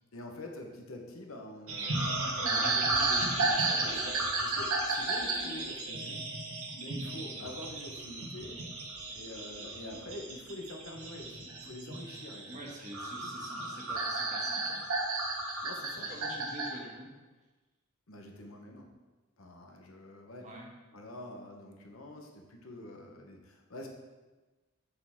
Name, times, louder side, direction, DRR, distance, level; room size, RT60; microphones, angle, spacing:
voice 1, 0.1-6.2 6.7-8.7 9.1-12.6 15.6-16.1 18.1-18.9 19.4-20.5 20.9-23.9, left 1 dB, 75° left, 2 dB, 1.1 m, -46 dB
sound 1, 1.7-16.7, right 2 dB, 85° right, 1.3 m, -33 dB
voice 2, 12.5-15.0 16.0-17.1 20.4-20.7, right 1 dB, 35° right, -2 dB, 1.4 m, -46 dB
6.9 x 6.7 x 3.7 m, 1.2 s
head